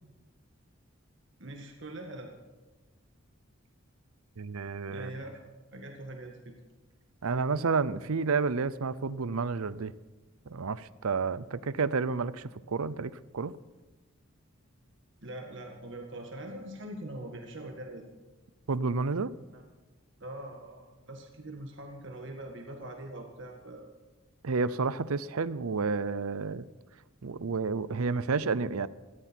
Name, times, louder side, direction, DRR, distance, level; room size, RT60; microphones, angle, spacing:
voice 1, 1.4-2.3 4.9-5.4 5.7-6.5 15.2-18.0 19.5-19.6 20.2-23.9, right 1 dB, 55° right, 2 dB, 1.8 m, -42 dB
voice 2, 4.4-5.2 7.2-9.9 10.5-13.5 18.7-19.3 24.4-26.7 27.2-28.9, right 4 dB, 85° right, 17 dB, 0.6 m, -30 dB
18.5 x 14.0 x 4.5 m, 1.2 s
head